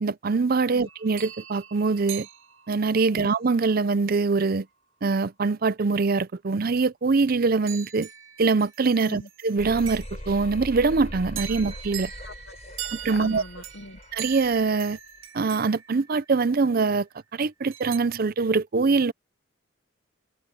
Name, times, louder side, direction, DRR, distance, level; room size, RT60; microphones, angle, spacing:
voice 1, 0.0-2.3 2.7-4.7 5.0-8.1 8.4-12.1 12.9-13.4 14.1-15.0 15.3-17.1 17.3-19.1, right 4 dB, 50° right, 0.5 m, -23 dB
sound 1, 0.9-3.1 7.7-10.5 11.3-16.7 17.7-18.0, right 10 dB, 85° right, 2.0 m, -41 dB
sound 2, 9.6-14.7, left 1 dB, 35° left, 5.0 m, -40 dB
voice 2, 12.2-14.0, left 2 dB, 65° left, 1.0 m, -43 dB
head